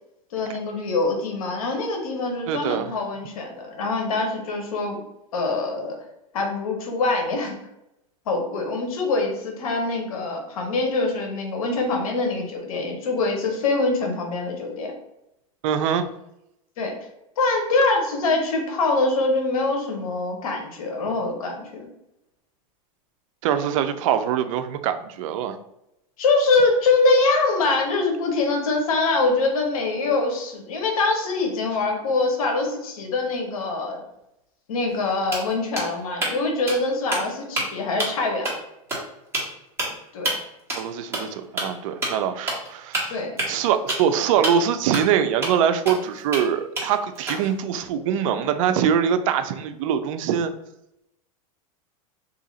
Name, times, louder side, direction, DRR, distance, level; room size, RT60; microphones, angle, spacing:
voice 1, 0.3-5.0 5.3-5.9 6.3-7.6 8.3-14.9 16.8-16.9 17.4-21.9 26.2-34.0 34.7-38.5 40.1-40.4 43.1-43.3, left 3 dB, 85° left, 2 dB, 0.9 m, -24 dB
voice 2, 2.5-2.9 15.6-16.1 23.4-25.6 40.7-43.1 43.5-50.5, right 8 dB, 65° right, 9 dB, 0.4 m, -23 dB
sound 1, 34.9-35.0 35.3-36.4 36.7-36.8 37.1-37.7 38.0-38.2 38.4-38.5 38.9-39.0 39.3-39.4 39.8-39.9 40.2-40.3 40.7-40.8 41.1-41.2 41.6-41.7 42.0-42.1 42.5-42.7 42.9-44.1 44.4-44.5 44.9-45.0 45.4-45.5 45.9-46.4 46.8-47.6, right 2 dB, 15° right, 1.3 m, -27 dB
2.8 x 2.6 x 3.9 m, 0.86 s
supercardioid pair, 125°, 18 cm